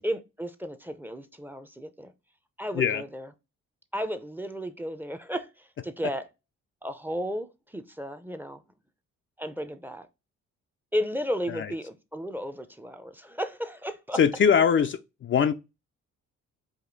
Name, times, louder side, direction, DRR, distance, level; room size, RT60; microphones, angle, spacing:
voice 1, 0.0-2.1 2.6-3.3 3.9-6.2 6.8-8.6 9.4-10.1 10.9-14.2, equal, 5° right, 0.6 m, -34 dB
voice 2, 14.2-15.5, left 7 dB, 40° left, 0.4 m, -22 dB
5.0 x 2.7 x 3.8 m
cardioid pair, 90°, 30 cm